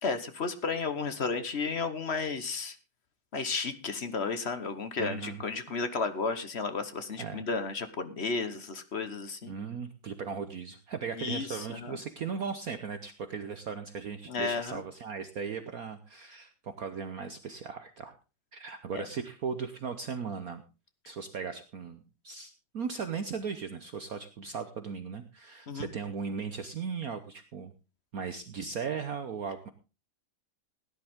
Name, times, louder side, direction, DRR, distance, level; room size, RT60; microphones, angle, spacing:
voice 1, 0.0-2.8 3.3-9.5 11.2-12.0 14.3-14.8 18.9-19.0 25.7-25.9, left 4 dB, 40° left, 10 dB, 1.1 m, -33 dB
voice 2, 5.0-5.4 7.2-7.4 9.5-18.1 18.5-20.6 21.0-27.7 28.1-29.7, right 6 dB, 55° right, 9 dB, 1.2 m, -37 dB
16.5 x 10.5 x 3.6 m, 0.30 s
omnidirectional pair, 2.2 m